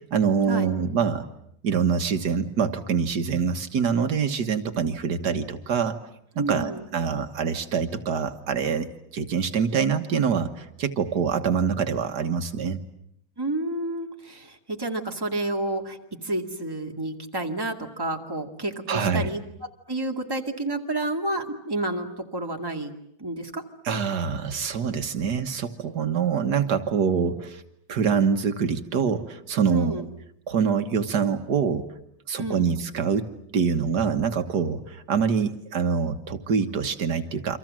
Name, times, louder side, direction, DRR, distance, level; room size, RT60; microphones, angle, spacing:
voice 1, 0.1-1.3 1.6-6.0 6.4-12.8 18.9-19.3 23.9-27.6 27.9-30.0 30.5-31.9 32.3-37.6, right 6 dB, 75° right, 7 dB, 1.9 m, -25 dB
voice 2, 6.4-6.8 13.4-19.4 19.9-22.9 23.2-23.6 29.7-30.1 32.4-32.8, right 2 dB, 15° right, 2 dB, 2.2 m, -30 dB
29.0 x 25.5 x 7.6 m, 0.73 s
omnidirectional pair, 1.8 m